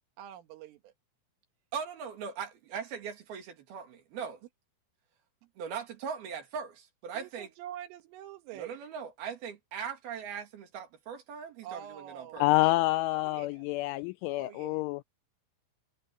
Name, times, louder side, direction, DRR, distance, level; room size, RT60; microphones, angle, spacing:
voice 1, 0.2-0.9 7.2-8.8 11.6-12.5 13.1-13.6 14.4-14.8, right 11 dB, 75° right, 4.1 m, -46 dB
voice 2, 1.7-4.4 5.6-7.5 8.5-12.4, right 7 dB, 55° right, 3.7 m, -40 dB
voice 3, 12.4-15.0, left 19 dB, 85° left, 2.8 m, -27 dB
omnidirectional pair, 6.0 m